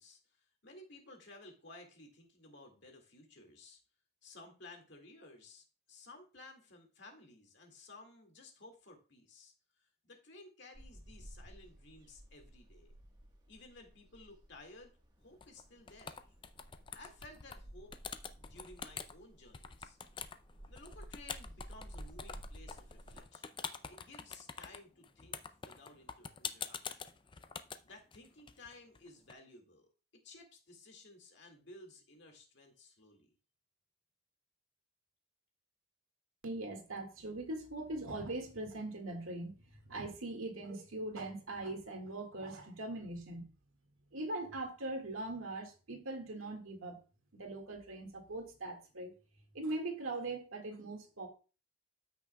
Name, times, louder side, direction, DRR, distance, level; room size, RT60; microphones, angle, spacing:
voice 1, 0.0-3.8 4.2-12.9 13.5-15.0 15.2-16.2 16.9-20.0 20.7-23.6 23.9-27.2 27.8-29.9 30.2-33.3, left 2 dB, 55° left, 3 dB, 2.0 m, -56 dB
sound 1, 10.7-23.2, right 1 dB, 20° right, 1.3 m, -54 dB
sound 2, 15.4-15.6 15.9-17.6 17.9-19.1 19.5-29.3, left 6 dB, 25° left, 0.4 m, -45 dB
voice 2, 36.4-43.5 44.1-47.0 47.3-49.1 49.5-51.3, right 2 dB, 85° right, 4 dB, 1.9 m, -41 dB
13.5 x 6.1 x 2.3 m, 0.34 s
head